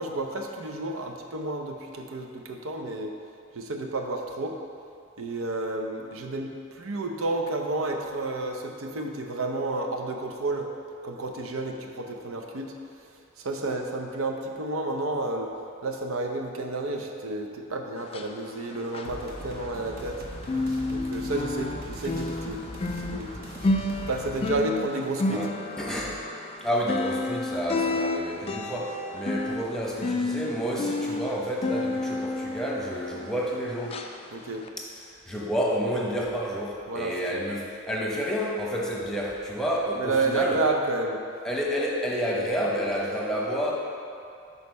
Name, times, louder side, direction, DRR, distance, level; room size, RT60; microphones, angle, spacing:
voice 1, 0.0-3.1 3.5-4.6 5.2-10.7 11.0-12.7 13.4-15.5 15.8-20.2 20.9-22.6 22.9-23.5 24.1-25.4 34.3-34.6 36.9-37.4 39.9-41.2, right 2 dB, 80° right, 2 dB, 0.7 m, -31 dB
sound 1, 18.0-20.2 20.4-33.5 33.9-34.1 34.6-34.7, left 2 dB, 30° left, 0.3 m, -31 dB
sound 2, 19.0-24.6, equal, 45° right, 1.0 m, -40 dB
voice 2, 25.8-26.2 26.6-34.0 34.8-40.6 41.4-43.7, equal, 5° left, -4 dB, 0.9 m, -30 dB
6.5 x 4.1 x 5.3 m, 2.5 s
head